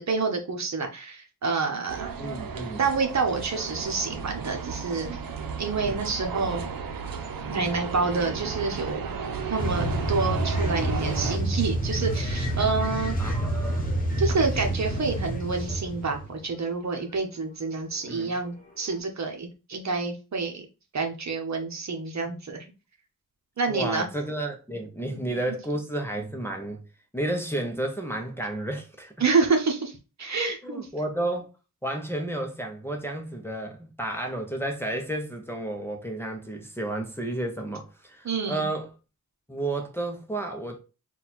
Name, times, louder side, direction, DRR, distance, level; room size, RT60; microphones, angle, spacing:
voice 1, 0.0-2.1 2.8-5.1 5.6-6.6 7.5-9.1 9.5-13.2 14.2-20.7 20.9-22.6 23.6-24.1 25.0-25.2 29.2-30.9 38.2-38.6, right 4 dB, 55° right, 0.9 m, -28 dB
sound 1, 1.9-11.4, right 5 dB, 80° right, 0.7 m, -34 dB
voice 2, 2.2-2.8 5.8-6.0 13.2-13.9 18.1-18.3 23.7-26.8 27.1-29.1 30.6-31.5 31.8-38.9 39.5-40.8, right 1 dB, 5° left, 0.6 m, -32 dB
sound 2, 9.6-16.4 18.9-19.0, right 1 dB, 25° left, 1.0 m, -28 dB
4.2 x 2.3 x 4.1 m
wide cardioid pair, 170°, 34 cm